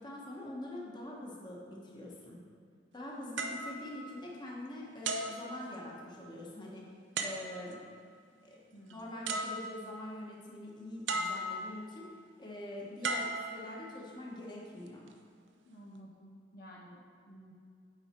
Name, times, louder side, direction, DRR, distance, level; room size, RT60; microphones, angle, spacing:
voice 1, 0.0-2.4 2.9-6.8 7.2-7.8 8.4-8.6 8.9-12.1 12.4-15.1, left 1 dB, 25° left, -3 dB, 1.3 m, -44 dB
sound 1, 3.4-4.6 5.0-6.2 7.2-7.9 8.9-9.0 9.3-10.1 11.1-11.9 13.0-14.1 14.9-15.1, right 2 dB, 75° right, 0.7 m, -37 dB
voice 2, 8.7-9.2 15.6-17.0 17.2-17.5, equal, 55° left, -3 dB, 0.8 m, -53 dB
8.8 x 4.9 x 4.5 m, 2.3 s
head